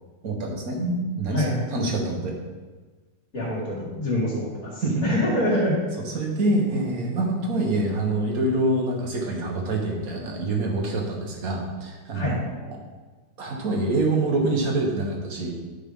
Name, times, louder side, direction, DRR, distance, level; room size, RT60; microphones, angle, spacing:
voice 1, 0.2-0.8 1.2-1.4 1.7-2.4 4.8-5.0 6.1-12.3 12.7-12.8 13.4-15.5, right 2 dB, 50° right, 0 dB, 1.7 m, -25 dB
voice 2, 0.8-1.7 3.3-5.8 12.1-12.4, left 1 dB, 50° left, -9 dB, 2.8 m, -26 dB
11.5 x 5.5 x 3.7 m, 1.3 s
omnidirectional pair, 2.0 m